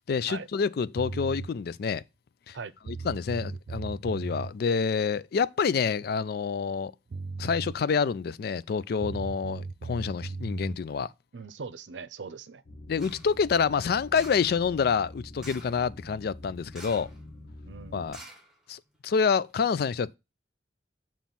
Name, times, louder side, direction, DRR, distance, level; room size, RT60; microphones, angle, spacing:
voice 1, 0.0-2.0 2.5-2.6 2.9-6.9 7.4-11.1 12.9-17.1 17.9-18.2 18.7-20.2, left 6 dB, 60° left, 0.4 m, -27 dB
sound 1, 1.0-1.5 2.5-2.6 2.9-4.5 6.8-6.9 7.1-7.8 9.0-10.8, right 3 dB, 45° right, 0.4 m, -36 dB
voice 2, 11.3-12.6 17.7-18.2, right 5 dB, 90° right, 0.6 m, -41 dB
sound 2, 12.6-18.2, left 1 dB, 80° left, 1.2 m, -46 dB
sound 3, 13.0-13.3 14.1-14.5 15.4-15.8 16.7-17.2 17.5-17.6 18.1-19.0 19.4-19.5, right 1 dB, 5° right, 1.6 m, -48 dB
7.2 x 3.1 x 5.7 m
head